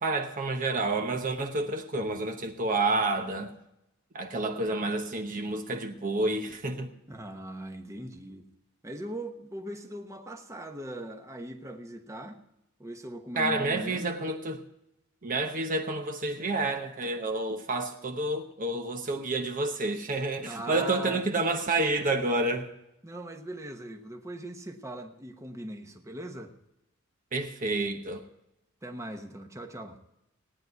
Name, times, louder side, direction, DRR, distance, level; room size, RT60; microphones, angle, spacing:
voice 1, 0.0-3.5 4.1-6.9 13.4-14.6 15.2-22.7 27.3-28.2, right 2 dB, 40° right, 5 dB, 0.9 m, -29 dB
voice 2, 7.1-8.4 8.8-12.4 12.8-14.1 20.4-21.2 23.0-26.5 28.8-30.0, right 1 dB, 15° right, 5 dB, 1.0 m, -40 dB
17.5 x 9.6 x 4.6 m, 0.86 s
head